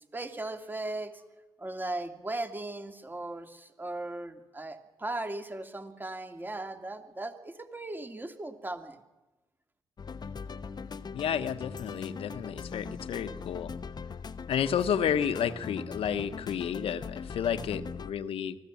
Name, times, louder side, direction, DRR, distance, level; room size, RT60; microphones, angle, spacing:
voice 1, 0.1-1.2 1.6-9.0, right 2 dB, 20° right, 6 dB, 2.4 m, -37 dB
sound 1, 10.0-18.1, left 5 dB, 45° left, 1.0 m, -40 dB
voice 2, 11.1-13.7 14.5-18.6, left 8 dB, 65° left, 12 dB, 1.2 m, -31 dB
24.5 x 15.5 x 7.2 m, 1.1 s
supercardioid pair, 55°, 10 cm